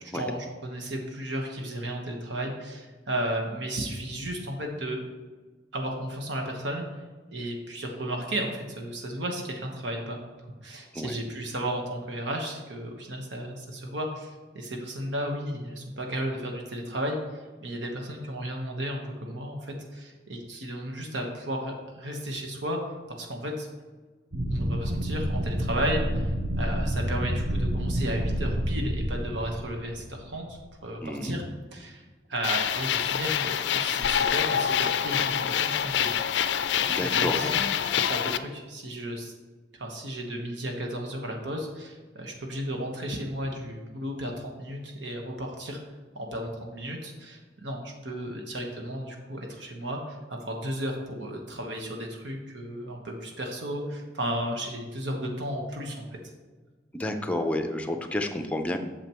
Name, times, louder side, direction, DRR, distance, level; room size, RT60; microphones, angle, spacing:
voice 1, 0.0-5.0 5.7-6.9 7.3-10.2 10.6-22.8 23.1-23.7 24.5-31.4 31.7-32.0 32.3-36.1 36.8-37.6 38.0-39.3 39.8-45.8 46.1-56.0, right 1 dB, 85° right, 1 dB, 1.2 m, -34 dB
sound 1, 24.3-30.5, equal, 45° right, 0.7 m, -29 dB
voice 2, 31.0-31.4 36.9-37.6 56.9-58.8, left 1 dB, 5° left, 5 dB, 0.5 m, -30 dB
sound 2, 32.4-38.4, left 9 dB, 75° left, 0.4 m, -26 dB
8.7 x 6.8 x 3.0 m, 1.3 s
head